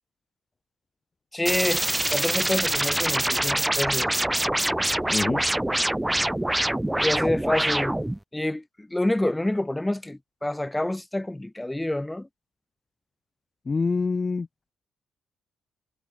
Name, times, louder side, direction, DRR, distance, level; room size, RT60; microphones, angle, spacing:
voice 1, 1.3-4.1 7.0-8.0 8.3-12.3, left 1 dB, 10° left, 2.2 m, -27 dB
sound 1, 1.4-8.2, right 1 dB, 10° right, 4.1 m, -25 dB
voice 2, 5.1-5.4 13.7-14.5, left 4 dB, 30° left, 1.0 m, -25 dB
cardioid pair, 90°, 0 cm